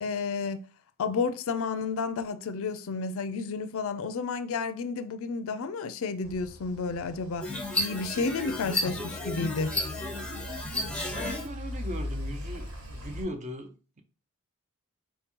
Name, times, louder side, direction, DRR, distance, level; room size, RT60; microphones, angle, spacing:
voice 1, 0.0-0.6 1.0-7.5 7.8-9.7, left 4 dB, 65° left, 0.4 m, -31 dB
sound 1, 6.2-13.2, left 1 dB, 65° right, 1.4 m, -40 dB
sound 2, 7.4-11.5, left 1 dB, 5° left, 0.8 m, -32 dB
voice 2, 10.9-14.0, right 1 dB, 30° right, 0.6 m, -39 dB
4.4 x 2.9 x 3.6 m
head